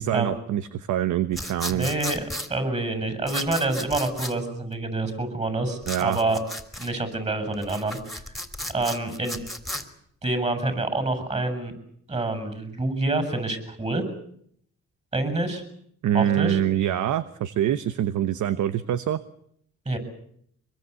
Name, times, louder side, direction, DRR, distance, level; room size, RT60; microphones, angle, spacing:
voice 1, 0.0-1.9 5.9-6.2 16.0-19.2, right 11 dB, 75° right, 14 dB, 1.1 m, -25 dB
sound 1, 1.3-2.5 3.3-4.3 5.8-6.9 7.5-9.8, left 1 dB, ahead, 3.5 m, -34 dB
voice 2, 1.7-6.4 6.8-8.2 8.7-9.4 10.2-11.7 12.1-14.0 15.1-15.6 16.1-16.6 19.9-20.0, right 2 dB, 20° right, 10 dB, 7.5 m, -27 dB
24.5 x 22.0 x 8.3 m, 0.67 s
cardioid pair, 90°, 30 cm